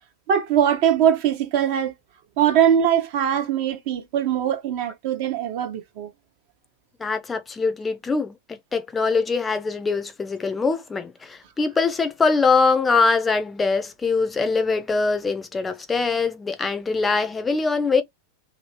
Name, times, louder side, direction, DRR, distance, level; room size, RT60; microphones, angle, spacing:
voice 1, 0.3-1.9 2.4-6.1, right 9 dB, 45° right, 0.8 m, -21 dB
voice 2, 7.0-8.4 8.7-18.0, left 4 dB, 15° left, 0.6 m, -22 dB
2.9 x 2.7 x 2.9 m
figure-of-eight pair, 90°, 0 cm